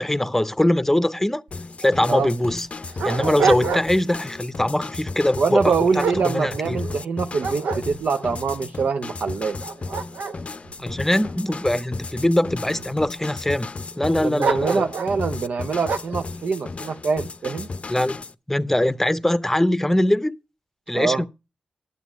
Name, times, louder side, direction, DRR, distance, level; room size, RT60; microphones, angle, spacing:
voice 1, 0.0-1.4 1.8-2.7 3.0-6.8 10.8-13.7 14.0-14.9 17.9-18.2 18.5-20.4 20.9-21.3, left 1 dB, 10° left, 0.7 m, -22 dB
sound 1, 1.5-18.3, left 3 dB, 50° left, 0.5 m, -35 dB
Dog, 1.5-1.6 1.8-1.9 2.5-4.1 4.6-4.9 5.5-7.0 7.4-8.3 8.9-9.0 9.5-11.8 12.5-13.1 14.4-15.2 15.8-16.2, right 5 dB, 90° right, 0.8 m, -28 dB
voice 2, 5.4-9.6 14.0-17.7 20.9-21.2, right 5 dB, 70° right, 0.6 m, -24 dB
11.0 x 7.2 x 6.0 m
cardioid pair, 45°, 3 cm